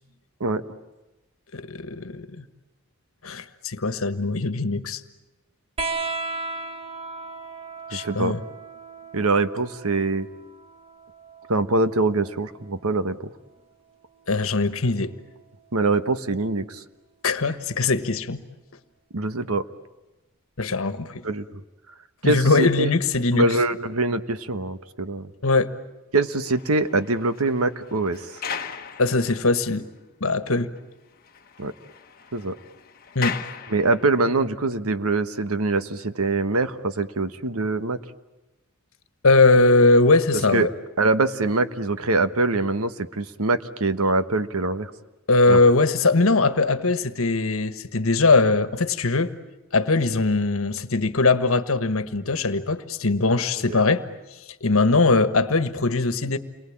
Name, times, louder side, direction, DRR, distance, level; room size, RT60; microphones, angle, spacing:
voice 1, 1.5-2.4 3.2-5.0 7.9-8.4 14.3-15.1 17.2-18.4 20.6-21.2 22.2-23.5 25.4-25.7 29.0-29.9 30.2-30.7 33.1-33.4 39.2-40.7 45.3-49.3 49.7-54.0 54.6-56.4, left 3 dB, 70° left, 11 dB, 1.5 m, -21 dB
sound 1, 5.8-12.8 14.2-15.0 16.3-16.4, right 3 dB, 25° right, 1.3 m, -36 dB
voice 2, 7.9-8.3 9.1-10.3 11.5-13.2 15.7-16.8 19.1-19.6 21.2-21.4 22.2-22.9 23.3-25.3 26.1-28.3 31.6-31.7 32.3-32.5 33.7-38.0 40.5-40.7 41.0-44.9 45.5-45.6 53.7-53.8, right 2 dB, 85° right, 11 dB, 1.3 m, -23 dB
sound 2, 26.3-29.8 30.3-30.4 30.8-30.9 31.1-34.4, left 7 dB, 45° left, 1.4 m, -37 dB
29.5 x 23.0 x 8.7 m, 1.0 s
head